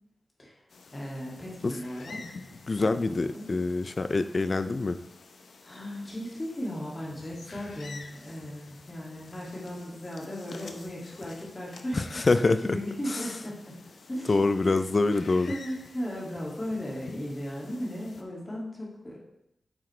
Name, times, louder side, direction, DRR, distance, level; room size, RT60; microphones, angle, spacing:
sound 1, 0.7-18.2, left 4 dB, 75° left, 0.7 m, -50 dB
voice 1, 0.9-2.2 2.8-3.5 5.6-13.8 14.1-14.3 14.6-14.7 15.5-19.2, equal, 25° left, -4 dB, 2.3 m, -36 dB
voice 2, 2.7-5.0 12.0-12.8 13.1-13.2 14.3-15.5, left 3 dB, 40° left, 11 dB, 0.4 m, -25 dB
8.6 x 6.4 x 3.2 m, 0.84 s
wide cardioid pair, 130°, 0 cm